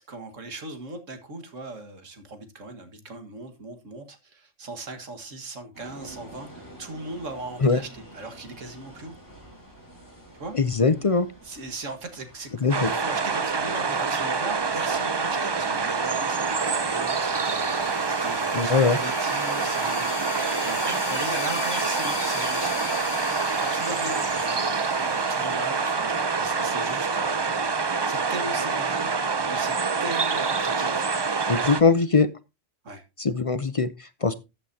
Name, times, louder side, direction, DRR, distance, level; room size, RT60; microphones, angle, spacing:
voice 1, 0.1-9.2 10.3-10.5 11.0-11.1 11.4-18.7 19.0-22.8 23.6-27.4 28.1-29.2 29.4-29.7 30.0-31.3 31.6-31.9 32.8-33.0, right 2 dB, 85° right, 2.1 m, -38 dB
sound 1, 5.7-24.5, right 1 dB, 15° left, 4.5 m, -50 dB
voice 2, 10.5-11.3 12.6-12.9 18.5-19.0 31.5-32.3 33.2-34.3, left 4 dB, 40° left, 0.5 m, -21 dB
sound 2, 12.7-31.8, right 4 dB, 35° right, 0.4 m, -26 dB
sound 3, 15.9-27.2, left 10 dB, 60° left, 0.8 m, -39 dB
14.0 x 8.3 x 2.8 m
omnidirectional pair, 1.3 m